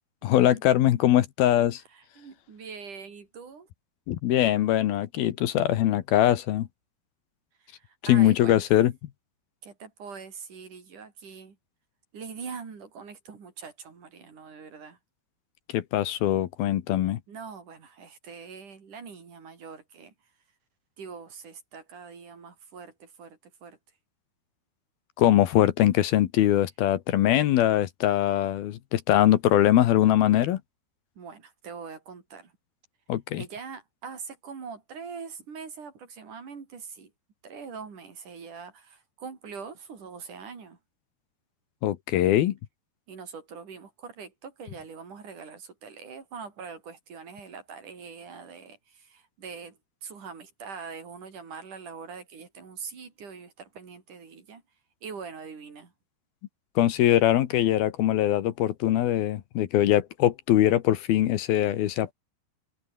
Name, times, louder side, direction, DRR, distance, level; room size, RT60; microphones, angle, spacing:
voice 1, 0.2-1.8 4.1-6.7 8.1-8.9 15.7-17.2 25.2-30.6 33.1-33.4 41.8-42.6 56.8-62.1, left 12 dB, 70° left, 3.0 m, -22 dB
voice 2, 1.9-3.7 7.6-8.6 9.6-11.6 12.1-15.0 17.3-20.1 21.0-23.8 31.2-32.5 33.4-37.1 37.4-40.8 43.1-54.6 55.0-55.9, right 5 dB, 50° right, 5.1 m, -43 dB
omnidirectional pair, 4.7 m